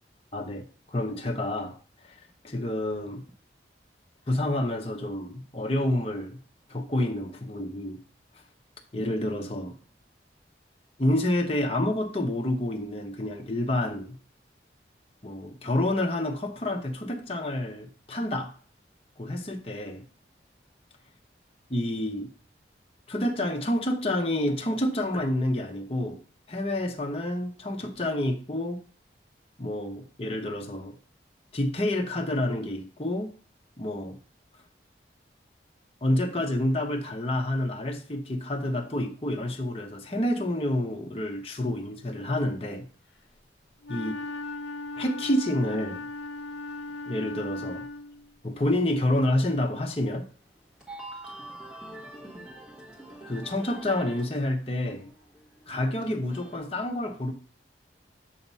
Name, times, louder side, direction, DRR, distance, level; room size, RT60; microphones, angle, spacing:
voice 1, 0.3-1.8 2.4-3.2 4.3-6.4 6.7-8.0 8.9-9.8 11.0-14.2 15.2-18.5 19.2-20.0 21.7-22.3 23.1-26.2 26.5-28.8 29.6-31.0 31.5-33.4 33.8-34.2 36.0-42.9 43.9-44.1 45.0-46.0 47.1-47.8 48.4-50.3 53.3-55.1 55.7-57.3, left 1 dB, 30° left, 0.8 m, -28 dB
Wind instrument woodwind instrument, 43.8-48.3, left 2 dB, 85° left, 0.7 m, -37 dB
sound 1, 49.9-50.0 50.6-54.4 54.6-56.6, right 1 dB, 5° right, 1.4 m, -44 dB
7.1 x 2.8 x 5.4 m
head